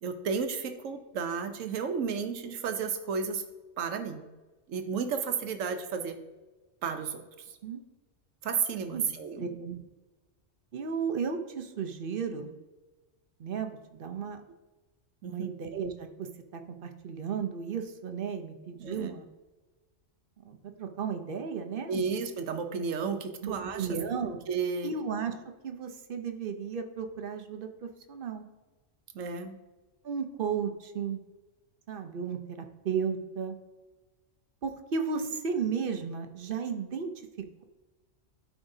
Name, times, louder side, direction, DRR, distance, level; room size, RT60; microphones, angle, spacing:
voice 1, 0.0-3.4 3.8-4.2 4.7-6.2 6.8-7.2 8.4-9.5 15.2-15.5 18.8-19.1 21.9-23.9 24.5-24.9 29.1-29.6, right 6 dB, 85° right, 8 dB, 1.1 m, -32 dB
voice 2, 9.4-9.8 10.7-12.5 13.4-14.4 15.3-19.2 20.5-22.1 23.4-24.4 24.8-25.3 25.6-28.5 30.0-31.2 31.9-33.6 34.6-37.1, right 6 dB, 55° right, 6 dB, 0.8 m, -34 dB
12.5 x 4.9 x 2.7 m, 1.2 s
omnidirectional pair, 1.3 m